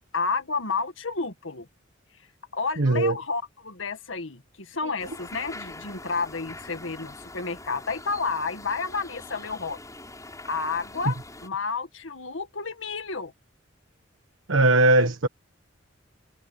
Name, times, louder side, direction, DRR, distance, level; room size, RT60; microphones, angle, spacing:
voice 1, 0.0-1.7 2.5-9.8 10.5-11.2 11.4-13.3, left 4 dB, 80° left, 2.0 m, -31 dB
voice 2, 2.8-3.2 11.0-11.1 14.5-15.3, right 2 dB, 80° right, 1.3 m, -19 dB
sound 1, 5.0-11.5, left 2 dB, 15° left, 6.7 m, -43 dB
head